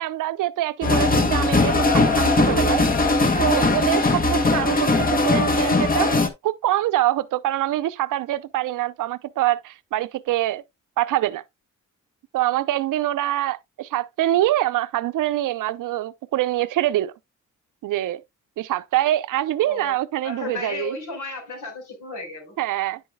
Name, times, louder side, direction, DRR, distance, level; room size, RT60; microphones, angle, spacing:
voice 1, 0.0-10.6 11.0-11.4 12.3-17.1 17.8-18.2 18.6-21.0 22.6-23.0, right 14 dB, 90° right, 0.6 m, -25 dB
sound 1, 0.8-6.3, left 2 dB, 30° left, 1.3 m, -19 dB
voice 2, 19.6-20.0 20.2-22.6, left 3 dB, 70° left, 4.5 m, -34 dB
9.6 x 7.1 x 2.3 m
cardioid pair, 95°, 31 cm